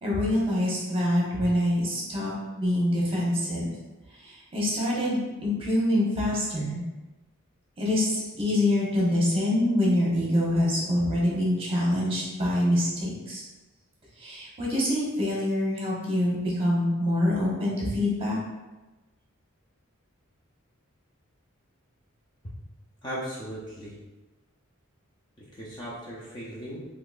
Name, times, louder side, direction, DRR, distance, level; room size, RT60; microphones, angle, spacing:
voice 1, 0.0-3.7 4.2-6.8 7.8-13.4 14.2-18.4, left 1 dB, 25° right, -6 dB, 1.2 m, -25 dB
voice 2, 23.0-24.0 25.4-26.9, equal, 20° left, -5 dB, 0.5 m, -37 dB
3.9 x 3.1 x 2.5 m, 1.1 s
head